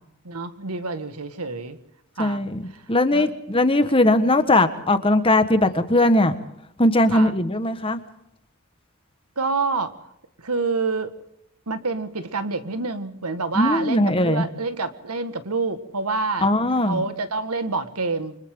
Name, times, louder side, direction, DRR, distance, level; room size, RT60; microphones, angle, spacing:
voice 1, 0.2-1.8 2.2-2.4 3.1-3.3 4.2-4.3 5.6-5.8 7.1-7.3 9.4-9.9 10.4-11.1 11.7-18.4, right 3 dB, 90° right, 10 dB, 1.8 m, -27 dB
voice 2, 2.2-6.3 6.8-8.0 13.5-14.4 16.4-17.0, left 1 dB, 25° left, 9 dB, 1.5 m, -19 dB
29.0 x 25.0 x 3.9 m, 0.79 s
head